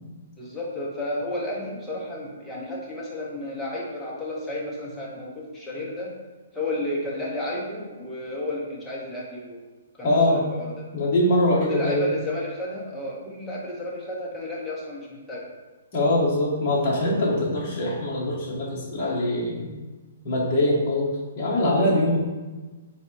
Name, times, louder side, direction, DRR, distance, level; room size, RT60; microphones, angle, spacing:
voice 1, 0.4-6.1 6.5-9.6 10.0-10.7 11.6-15.5, left 1 dB, 5° left, -6 dB, 0.6 m, -32 dB
voice 2, 10.0-10.4 10.9-12.1 15.9-19.7 20.2-22.2, left 1 dB, 25° left, -6 dB, 1.0 m, -23 dB
4.0 x 2.6 x 4.3 m, 1.3 s
hypercardioid pair, 180°, 0 cm